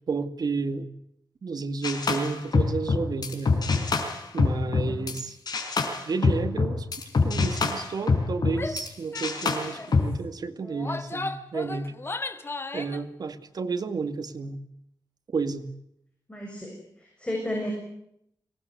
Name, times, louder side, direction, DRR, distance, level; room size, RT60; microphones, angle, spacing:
voice 1, 0.1-0.9 1.4-3.6 4.3-5.4 6.1-6.9 7.2-11.9 12.7-14.6 15.3-15.7, right 4 dB, 65° right, 8 dB, 2.1 m, -31 dB
sound 1, 1.8-5.2 5.5-8.9 9.1-10.1, left 4 dB, 65° left, 4.9 m, -25 dB
voice 2, 4.6-5.1 16.3-16.7 17.0-17.7, left 1 dB, 15° left, 0 dB, 7.3 m, -33 dB
Female speech woman speaking / Yell, 8.5-8.8 9.1-9.3 9.6-9.9 10.6-13.0, left 3 dB, 30° left, 1.7 m, -35 dB
24.5 x 19.0 x 9.5 m, 0.74 s
wide cardioid pair, 125°, 7 cm